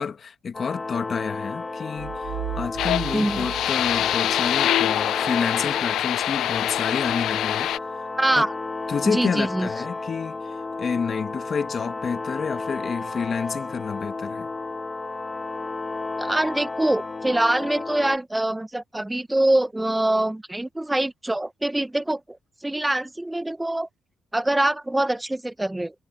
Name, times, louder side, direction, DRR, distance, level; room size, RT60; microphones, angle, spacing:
voice 1, 0.0-8.1 8.3-8.4 8.9-14.5, left 6 dB, 45° left, 1.5 m, -29 dB
sound 1, 0.5-18.2, left 3 dB, 25° left, 1.2 m, -32 dB
sound 2, 2.0-4.6, right 15 dB, 90° right, 0.8 m, -36 dB
sound 3, 2.8-7.8, left 12 dB, 80° left, 0.4 m, -25 dB
voice 2, 3.1-3.5 8.2-8.5 9.0-9.7 16.2-23.9 24.3-25.9, right 1 dB, 10° right, 1.1 m, -24 dB
cardioid pair, 90°, 0 cm